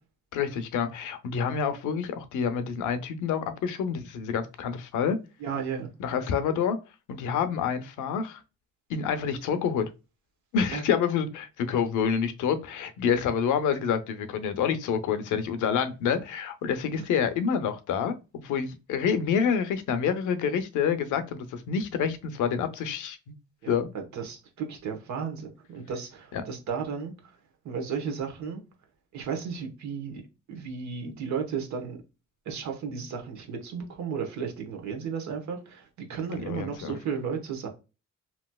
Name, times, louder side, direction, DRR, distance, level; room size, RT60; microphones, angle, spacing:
voice 1, 0.3-5.2 6.0-6.8 7.1-8.4 8.9-9.9 10.5-23.3 23.7-23.9 26.3-26.4 36.3-37.0, left 7 dB, 85° left, 0.6 m, -28 dB
voice 2, 5.4-5.9 10.7-10.8 23.6-27.4 27.6-28.6 29.1-30.2 30.5-32.0 32.4-37.7, right 6 dB, 70° right, 1.1 m, -34 dB
3.1 x 2.8 x 2.2 m
cardioid pair, 90°, 30 cm